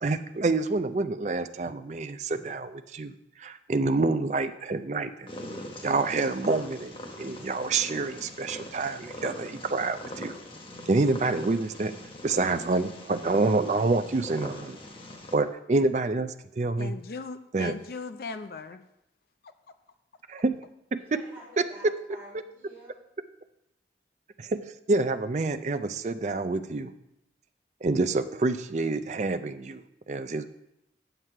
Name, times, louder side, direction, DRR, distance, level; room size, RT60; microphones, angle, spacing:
voice 1, 0.0-5.3 5.8-10.3 10.9-11.9 12.2-14.8 15.3-16.9 17.5-17.7 20.3-20.5 20.9-21.2 21.6-21.7 24.4-26.9 27.8-30.5, right 3 dB, 40° right, 10 dB, 0.4 m, -27 dB
Purr, 5.3-15.4, left 1 dB, 30° left, 0.9 m, -42 dB
voice 2, 16.8-18.8, left 4 dB, 55° left, 9 dB, 0.4 m, -38 dB
voice 3, 21.0-23.0, equal, 10° right, -7 dB, 3.8 m, -49 dB
8.0 x 7.5 x 4.5 m, 0.84 s
head